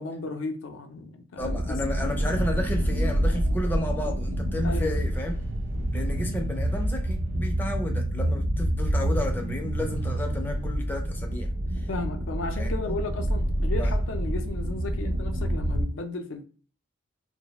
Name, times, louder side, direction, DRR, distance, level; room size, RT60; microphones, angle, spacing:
voice 1, 0.0-1.7 4.6-4.9 11.9-16.5, left 3 dB, 70° left, 0.4 m, -35 dB
voice 2, 1.4-5.3 5.9-11.9 12.6-12.9 13.8-13.9, left 1 dB, 10° left, 0.4 m, -32 dB
sound 1, 1.4-15.8, right 1 dB, 75° right, 0.6 m, -27 dB
2.3 x 2.0 x 2.8 m
head